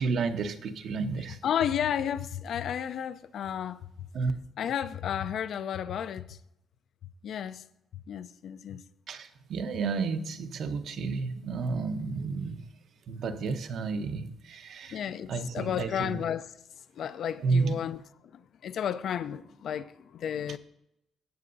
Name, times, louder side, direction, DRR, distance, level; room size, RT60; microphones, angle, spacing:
voice 1, 0.0-1.4 4.1-4.3 9.1-12.6 13.1-15.0 15.3-16.2 17.4-17.8 20.5-20.6, right 4 dB, 60° right, 0.9 m, -31 dB
voice 2, 1.4-3.8 4.6-6.4 7.2-7.6 8.1-8.8 14.9-16.5 17.0-18.0 18.6-20.6, left 9 dB, 65° left, 0.4 m, -32 dB
17.0 x 7.6 x 2.7 m
cardioid pair, 125°, 0 cm